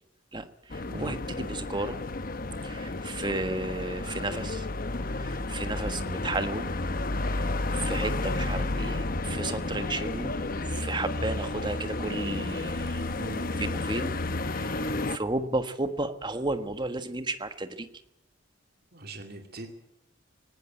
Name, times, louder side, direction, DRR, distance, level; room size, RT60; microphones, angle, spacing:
voice 1, 0.3-2.0 2.6-4.7 5.2-6.7 7.3-10.3 10.7-13.0 13.6-14.1 14.5-17.9, right 2 dB, 25° right, 10 dB, 1.4 m, -33 dB
sound 1, 0.7-15.2, left 2 dB, 45° left, 1.0 m, -31 dB
voice 2, 0.9-1.2 13.1-13.5 18.9-19.7, right 1 dB, 50° right, 4 dB, 2.6 m, -41 dB
19.0 x 18.5 x 9.1 m, 0.84 s
head